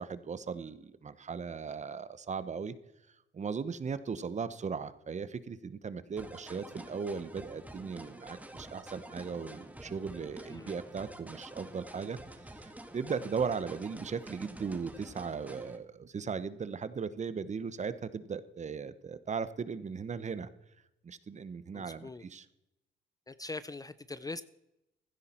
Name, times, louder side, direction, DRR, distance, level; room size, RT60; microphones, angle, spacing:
voice 1, 0.0-2.7 3.3-12.2 12.4-20.5 21.0-22.5, right 5 dB, 35° right, 15 dB, 0.9 m, -37 dB
sound 1, 6.2-15.8, right 1 dB, 5° right, 1.7 m, -48 dB
voice 2, 21.7-22.2 23.3-24.4, left 3 dB, 20° left, 15 dB, 0.5 m, -42 dB
15.5 x 12.0 x 4.4 m, 0.88 s
cardioid pair, 90°, 20 cm